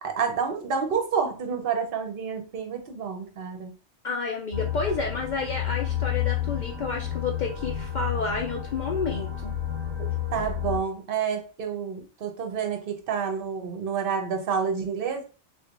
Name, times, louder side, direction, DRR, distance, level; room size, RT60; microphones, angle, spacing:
voice 1, 0.0-3.7 10.3-15.2, right 6 dB, 55° right, 5 dB, 0.8 m, -29 dB
voice 2, 4.0-9.6, left 4 dB, 65° left, 0 dB, 0.4 m, -30 dB
sound 1, 4.5-10.8, left 11 dB, 20° right, 1.4 m, -30 dB
4.4 x 2.4 x 2.4 m, 0.35 s
omnidirectional pair, 1.3 m